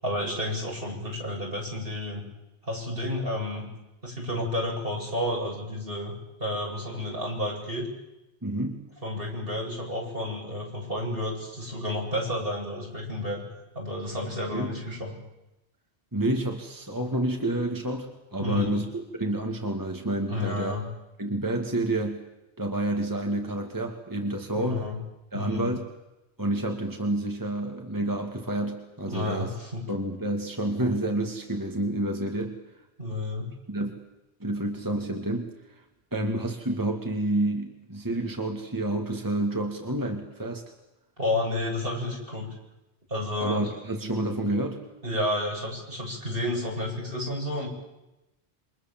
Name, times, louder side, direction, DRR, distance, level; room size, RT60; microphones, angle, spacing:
voice 1, 0.0-2.2 2.6-3.6 4.0-6.1 6.4-7.9 9.0-13.4 13.7-15.1 18.4-18.7 20.3-20.8 24.5-25.0 25.3-25.7 29.1-29.8 33.0-33.5 41.2-42.5 43.1-43.6 45.0-47.7, left 1 dB, 60° right, -2 dB, 8.3 m, -31 dB
voice 2, 8.4-8.9 14.5-14.8 16.1-20.7 21.2-22.2 22.6-24.9 25.3-25.9 26.4-29.5 29.9-32.6 33.7-33.9 34.4-35.8 36.1-40.6 43.4-44.8, right 1 dB, 20° right, 3 dB, 2.1 m, -29 dB
28.5 x 25.0 x 7.5 m, 0.96 s
omnidirectional pair, 1.1 m